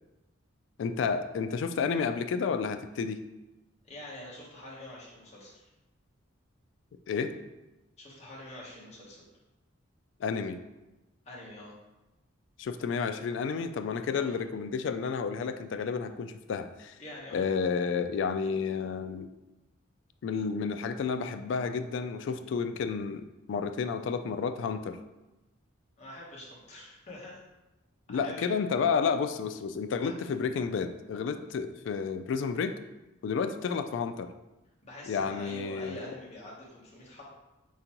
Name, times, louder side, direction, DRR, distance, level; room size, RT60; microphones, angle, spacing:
voice 1, 0.8-3.2 7.1-7.3 10.2-10.6 12.6-17.0 17.3-19.3 20.2-25.0 28.1-32.8 33.2-34.3 35.1-36.0, left 5 dB, 65° left, 9 dB, 0.3 m, -31 dB
voice 2, 3.8-5.7 8.0-9.3 11.2-11.8 14.2-14.3 17.0-17.5 26.0-27.4 28.1-28.5 30.0-30.1 34.8-37.2, left 1 dB, 35° left, -5 dB, 1.0 m, -45 dB
4.4 x 3.8 x 2.9 m, 1.0 s
head